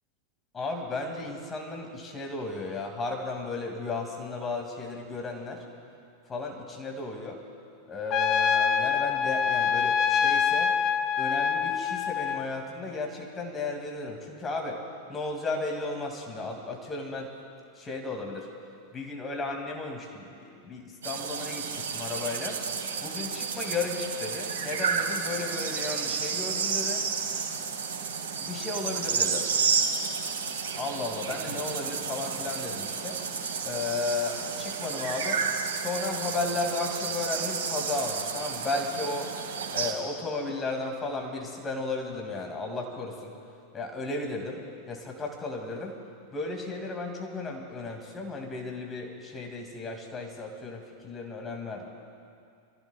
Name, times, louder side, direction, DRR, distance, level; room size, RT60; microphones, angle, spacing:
voice 1, 0.5-5.6 6.3-7.4 7.9-10.7 11.2-14.8 15.1-17.3 17.8-18.5 18.9-22.6 23.0-27.0 28.4-29.5 30.8-33.2 33.6-35.4 35.7-39.3 39.7-43.3 43.7-45.9 46.3-51.9, left 3 dB, 20° left, 1 dB, 2.5 m, -34 dB
Trumpet, 8.1-12.5, left 7 dB, 35° left, 0.5 m, -25 dB
sound 1, 21.0-39.9, right 6 dB, 60° right, 2.1 m, -31 dB
28.0 x 15.0 x 2.4 m, 2.4 s
figure-of-eight pair, 90°, 0 cm